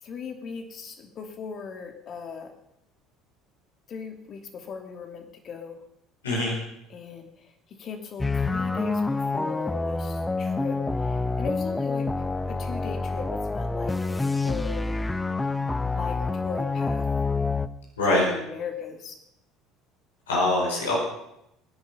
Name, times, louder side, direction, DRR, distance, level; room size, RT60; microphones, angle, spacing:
voice 1, 0.0-2.5 3.9-5.8 6.9-14.9 15.8-17.1 18.0-19.2, left 6 dB, 45° left, 5 dB, 2.7 m, -38 dB
voice 2, 6.2-6.6 18.0-18.3 20.3-21.0, left 2 dB, 80° left, -3 dB, 5.3 m, -23 dB
sound 1, 8.2-17.7, left 3 dB, 15° left, 0.9 m, -27 dB
21.0 x 10.5 x 5.6 m, 0.81 s
figure-of-eight pair, 60°, 0 cm